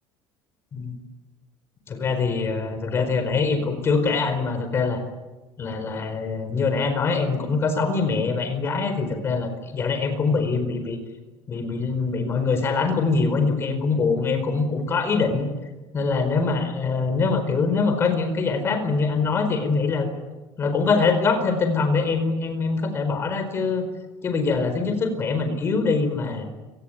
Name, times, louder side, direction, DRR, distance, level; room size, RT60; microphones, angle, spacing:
voice 1, 1.9-5.0 5.6-11.0 11.5-15.5 15.9-20.1 20.6-23.9 24.2-26.4, left 4 dB, 25° left, 8 dB, 4.6 m, -23 dB
29.5 x 19.0 x 9.3 m, 1.2 s
cardioid pair, 170°, 9 cm